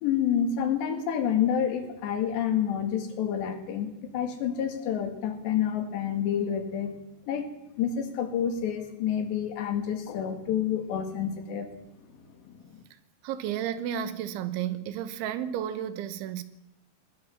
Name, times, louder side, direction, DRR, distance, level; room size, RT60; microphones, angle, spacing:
voice 1, 0.0-7.0 7.3-7.5 7.8-11.7 12.4-12.6, left 8 dB, 70° left, 4.2 m, -28 dB
voice 2, 13.2-16.4, right 10 dB, 85° right, 3.6 m, -32 dB
20.0 x 19.0 x 7.2 m
omnidirectional pair, 5.3 m